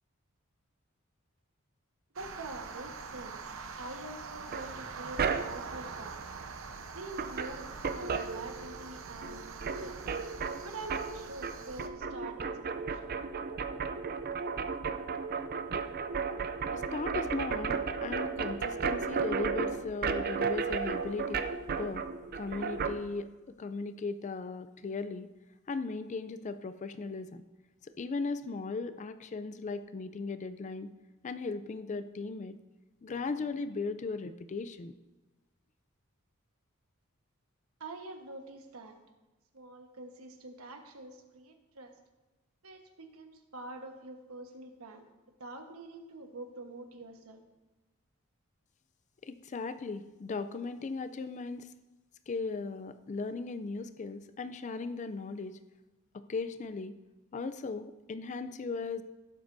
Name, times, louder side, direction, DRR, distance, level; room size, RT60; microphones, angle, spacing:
voice 1, 2.1-3.5 3.8-6.3 6.9-10.0 10.6-13.2 37.8-39.0 39.5-41.9 42.6-45.0 45.4-47.4, right 2 dB, 90° right, 4 dB, 1.3 m, -45 dB
sound 1, 2.2-11.9, right 5 dB, 65° right, 0.8 m, -44 dB
sound 2, 4.5-5.8 6.8-6.9 7.1-9.0 9.2-23.0, right 5 dB, 45° right, 0.5 m, -34 dB
voice 2, 16.7-21.4 21.8-22.1 22.3-23.3 23.6-25.3 25.7-27.4 27.8-30.9 31.2-32.6 33.0-35.0 49.2-51.7 52.3-55.6 56.1-56.9 57.3-59.0, left 4 dB, 35° left, 11 dB, 0.4 m, -37 dB
16.5 x 7.9 x 2.6 m, 1.1 s
head